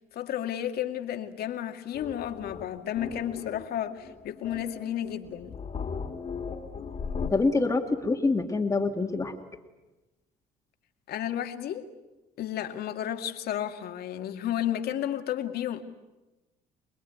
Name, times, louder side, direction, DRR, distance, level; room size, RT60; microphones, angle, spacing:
voice 1, 0.1-5.6 11.1-11.9 12.4-15.8, left 11 dB, 70° left, 2.2 m, -32 dB
sound 1, 1.9-7.3, left 5 dB, 35° left, 2.5 m, -37 dB
voice 2, 7.3-9.3, left 3 dB, 20° left, 2.1 m, -25 dB
26.5 x 20.5 x 9.4 m
cardioid pair, 110°, 17 cm